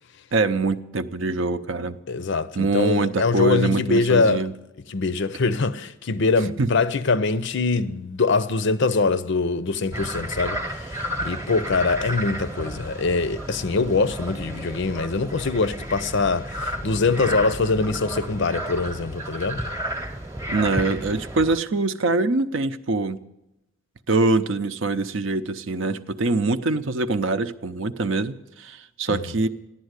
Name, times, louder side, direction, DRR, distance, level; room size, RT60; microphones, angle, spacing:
voice 1, 0.3-2.0 2.6-4.5 6.6-6.7 20.5-23.2 24.1-29.5, right 3 dB, 55° right, 0.7 m, -24 dB
voice 2, 2.1-4.5 4.9-19.6 29.1-29.3, left 3 dB, 50° left, 0.5 m, -23 dB
sound 1, 9.9-21.6, equal, 15° right, 1.0 m, -32 dB
14.5 x 11.5 x 8.1 m
head